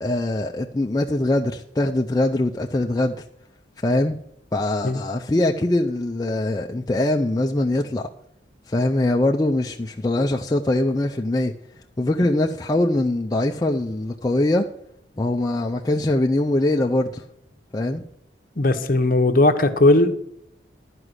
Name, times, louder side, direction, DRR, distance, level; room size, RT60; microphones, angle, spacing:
voice 1, 0.0-3.2 3.8-4.2 4.5-8.1 8.7-11.5 12.0-14.7 15.2-17.3 17.7-18.0, left 1 dB, 20° left, 0.4 m, -22 dB
voice 2, 18.6-20.1, left 2 dB, 45° left, 0.9 m, -17 dB
11.0 x 4.9 x 7.9 m
head